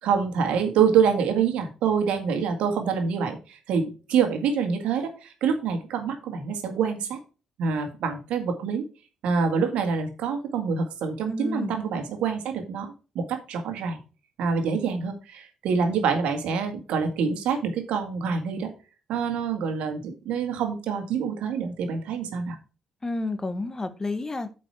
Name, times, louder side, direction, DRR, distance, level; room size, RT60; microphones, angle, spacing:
voice 1, 0.0-7.2 7.6-8.9 9.2-14.0 14.4-18.7 19.1-22.6, right 6 dB, 70° right, 2.0 m, -26 dB
voice 2, 11.3-11.8 23.0-24.5, left 2 dB, 25° left, 1.4 m, -30 dB
8.5 x 5.3 x 4.7 m
hypercardioid pair, 45°, 2 cm